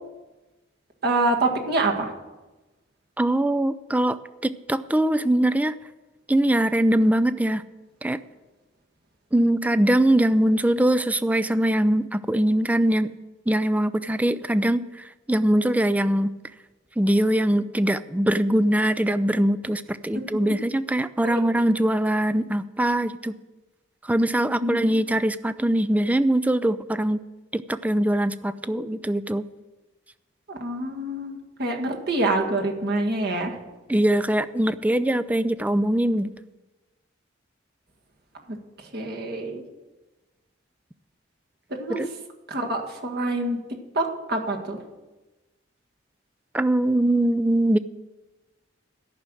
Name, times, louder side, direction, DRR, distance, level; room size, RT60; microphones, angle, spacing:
voice 1, 1.0-2.1 21.2-21.4 24.6-25.0 30.5-33.6 38.5-38.6 38.9-39.6 41.7-42.0 42.5-43.6 43.9-44.8, right 2 dB, 55° right, 1 dB, 1.9 m, -26 dB
voice 2, 3.2-5.8 6.3-7.6 8.0-8.2 9.3-13.1 13.5-14.8 15.3-16.3 17.0-23.3 24.0-27.2 27.5-29.4 33.9-36.3 41.9-42.1 46.5-47.8, right 1 dB, 10° right, 14 dB, 0.4 m, -22 dB
13.0 x 6.4 x 9.0 m, 1.1 s
head